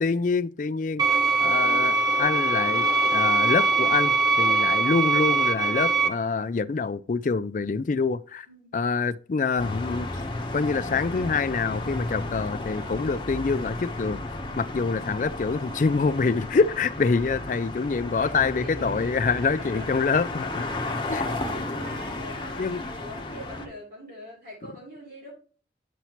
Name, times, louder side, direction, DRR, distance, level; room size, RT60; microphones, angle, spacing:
voice 1, 0.0-1.0 1.4-8.5 8.7-10.1 10.5-14.2 14.6-20.7 21.1-21.2 22.6-22.8, left 4 dB, 45° left, 0.4 m, -26 dB
sound 1, 1.0-6.1, right 3 dB, 20° right, 0.8 m, -22 dB
sound 2, 9.6-23.7, left 2 dB, 25° left, 1.0 m, -33 dB
voice 2, 18.1-19.9 20.7-25.3, equal, 50° right, 3.3 m, -43 dB
9.2 x 5.7 x 3.0 m
head